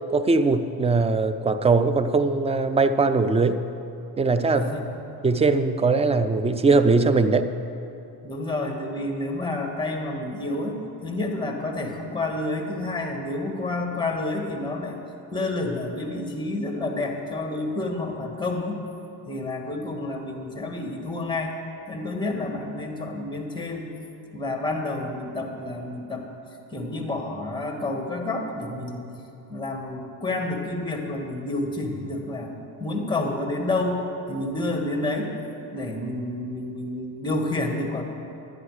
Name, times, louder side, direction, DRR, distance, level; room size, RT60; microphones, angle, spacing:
voice 1, 0.1-3.6 4.2-4.7 5.2-7.5, right 3 dB, 15° right, 11 dB, 0.3 m, -20 dB
voice 2, 4.5-4.9 8.2-15.0 15.3-18.8 19.3-21.6 21.9-23.9 24.3-26.2 26.7-29.1 29.5-32.5 32.8-35.3 35.7-38.0, left 2 dB, 10° left, 2 dB, 1.7 m, -29 dB
11.0 x 10.5 x 4.9 m, 2.8 s
supercardioid pair, 80°, 49 cm